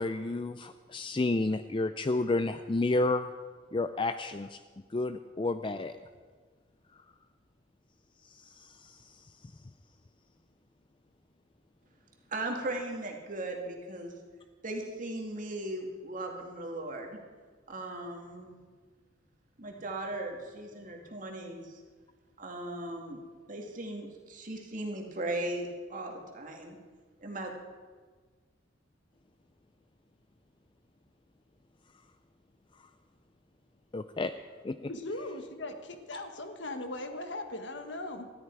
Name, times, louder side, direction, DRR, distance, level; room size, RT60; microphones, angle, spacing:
voice 1, 0.0-3.3 3.7-4.6 4.9-6.0 8.3-9.5 33.9-34.3 34.6-34.9, left 2 dB, 25° left, 10 dB, 0.4 m, -31 dB
voice 2, 12.3-14.1 14.6-17.2 17.7-18.6 19.6-21.8 22.4-23.2 23.5-26.8 27.2-27.5, right 1 dB, 40° right, 2 dB, 2.2 m, -37 dB
voice 3, 34.9-38.3, left 2 dB, 65° left, 6 dB, 1.4 m, -39 dB
19.5 x 13.5 x 4.7 m, 1.5 s
head